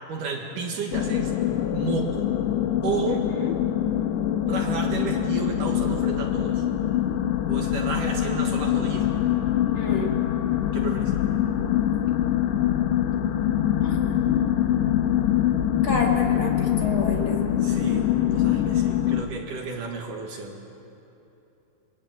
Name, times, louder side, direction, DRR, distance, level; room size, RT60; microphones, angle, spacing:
voice 1, 0.1-2.3 2.8-3.3 4.5-6.6 7.5-9.1 10.7-11.1 17.6-20.6, right 4 dB, 60° right, 2 dB, 2.4 m, -32 dB
sound 1, 0.9-19.2, left 11 dB, 75° left, 2.9 m, -24 dB
voice 2, 3.1-3.5 9.7-10.2 13.8-14.0 15.8-17.4, left 2 dB, 55° left, 0 dB, 1.4 m, -30 dB
22.5 x 22.0 x 8.9 m, 3.0 s
omnidirectional pair, 5.7 m